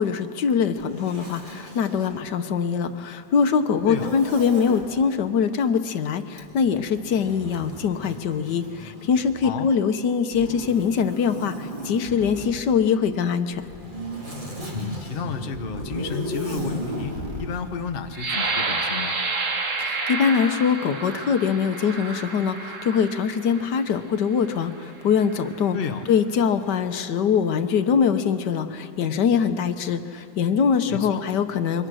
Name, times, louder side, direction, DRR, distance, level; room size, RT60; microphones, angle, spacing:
voice 1, 0.0-13.6 19.8-25.8 26.1-31.9, left 6 dB, 80° left, 9 dB, 1.5 m, -23 dB
Zipper (clothing), 0.8-2.2 3.8-4.9 6.3-9.5 10.3-12.6 13.5-17.5, equal, 30° right, 2.8 m, -35 dB
voice 2, 14.7-19.2 25.7-26.0 30.9-31.2, left 6 dB, 40° left, 6 dB, 1.0 m, -32 dB
sound 1, 18.1-23.8 24.5-24.6 25.1-25.5, right 3 dB, 50° right, 1.8 m, -29 dB
27.0 x 23.5 x 6.3 m, 2.7 s
omnidirectional pair, 1.8 m